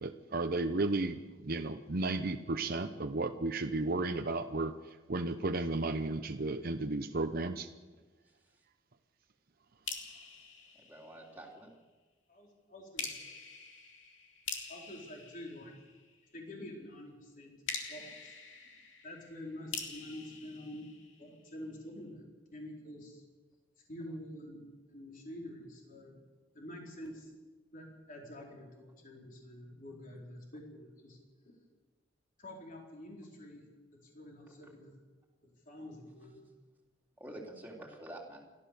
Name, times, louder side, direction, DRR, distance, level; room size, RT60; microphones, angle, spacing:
voice 1, 0.0-4.7 5.1-7.7, right 2 dB, 50° right, 6 dB, 0.8 m, -33 dB
sound 1, 9.9-11.6 13.0-16.3 17.7-21.6, left 5 dB, 75° left, 2.8 m, -45 dB
voice 2, 10.7-11.7 34.5-34.6 37.2-38.4, right 1 dB, 10° right, -2 dB, 3.4 m, -47 dB
voice 3, 12.3-13.2 14.7-15.7 16.3-17.5 17.9-18.4 19.0-20.9 21.2-23.2 23.9-26.2 26.5-27.3 27.7-31.2 32.4-33.7 34.0-35.0 35.4-36.4, left 1 dB, 45° left, -1 dB, 4.4 m, -47 dB
30.0 x 13.0 x 6.8 m, 1.3 s
head